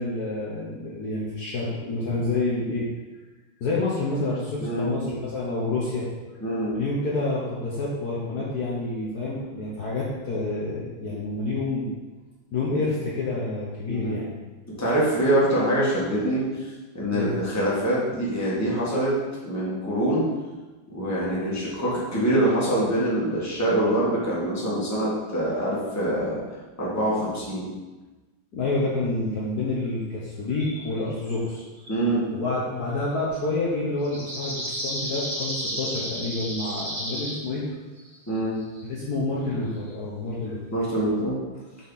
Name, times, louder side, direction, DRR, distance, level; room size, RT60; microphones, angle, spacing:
voice 1, 0.0-2.9 3.6-6.1 6.7-11.9 12.5-14.3 17.1-17.3 28.5-31.6 32.3-37.6 38.8-40.6, left 2 dB, 55° left, -6 dB, 1.4 m, -28 dB
voice 2, 6.4-6.7 13.9-14.3 14.8-16.7 16.9-19.1 19.4-20.3 20.9-26.4 26.8-27.6 31.9-32.3 38.3-38.6 40.7-41.4, right 1 dB, 10° left, -7 dB, 1.7 m, -24 dB
sound 1, 30.6-30.9 31.2-31.4 31.8-31.9 34.0-37.5 38.0-38.1 38.4-38.8 39.9-40.0, equal, 45° right, 3.1 m, -32 dB
6.5 x 5.5 x 4.1 m, 1.2 s
omnidirectional pair, 2.3 m